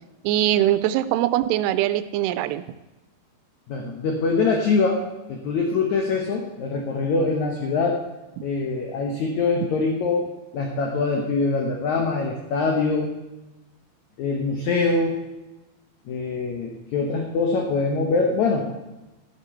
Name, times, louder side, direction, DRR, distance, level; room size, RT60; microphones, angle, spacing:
voice 1, 0.2-2.6, right 13 dB, 90° right, 13 dB, 2.7 m, -22 dB
voice 2, 3.7-8.0 8.4-10.3 10.5-13.1 14.2-15.2 16.1-18.7, left 4 dB, 65° left, 1 dB, 1.9 m, -23 dB
12.5 x 12.0 x 4.4 m, 1.0 s
omnidirectional pair, 4.7 m